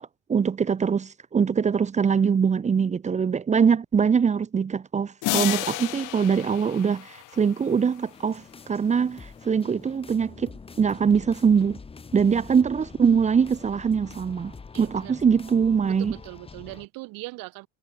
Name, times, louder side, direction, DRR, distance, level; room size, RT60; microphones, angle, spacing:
voice 1, 0.0-10.5 10.8-11.8 12.1-16.1, right 6 dB, 15° right, 1.3 m, -23 dB
sound 1, 5.2-7.7, left 21 dB, 50° left, 1.6 m, -31 dB
sound 2, 8.1-16.9, left 4 dB, 15° left, 3.1 m, -45 dB
voice 2, 14.7-15.1 15.9-17.7, right 23 dB, 55° right, 4.1 m, -40 dB
cardioid pair, 160°, 41 cm